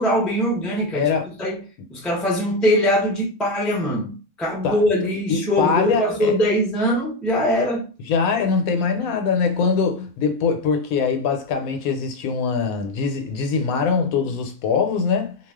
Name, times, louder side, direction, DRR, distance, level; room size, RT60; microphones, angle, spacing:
voice 1, 0.0-1.1 1.4-1.6 1.9-7.9, equal, ahead, 0.4 m, -22 dB
voice 2, 0.9-1.3 4.6-4.8 5.3-6.3 8.1-15.4, left 5 dB, 75° left, 1.0 m, -22 dB
2.3 x 2.3 x 3.4 m
omnidirectional pair, 1.5 m